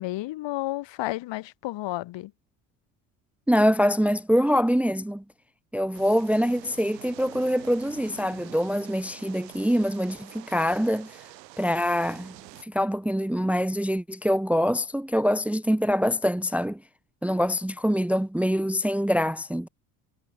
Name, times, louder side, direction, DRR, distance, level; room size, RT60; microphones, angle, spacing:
voice 1, 0.0-2.3, left 17 dB, 60° left, 3.1 m, -31 dB
voice 2, 3.5-5.2 5.7-11.1 11.6-12.3 12.7-16.8 17.2-19.7, equal, 5° right, 0.9 m, -24 dB
sound 1, 5.9-12.6, right 18 dB, 85° right, 2.5 m, -47 dB
hypercardioid pair, 65°, 49 cm